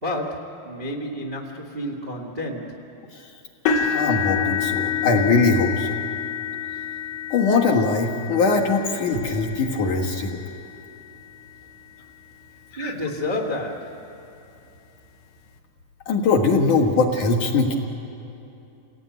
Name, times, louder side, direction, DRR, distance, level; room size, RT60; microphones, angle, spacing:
voice 1, 0.0-2.9 12.8-14.1, left 1 dB, 40° right, 1 dB, 0.7 m, -30 dB
sound 1, 3.7-11.7 12.3-12.6 13.0-13.1 14.5-14.6, left 7 dB, 85° left, 3.9 m, -29 dB
voice 2, 3.7-6.0 7.3-10.4 12.7-12.9 16.1-17.7, left 4 dB, 60° left, -1 dB, 2.4 m, -21 dB
29.5 x 19.0 x 9.5 m, 2.8 s
omnidirectional pair, 5.1 m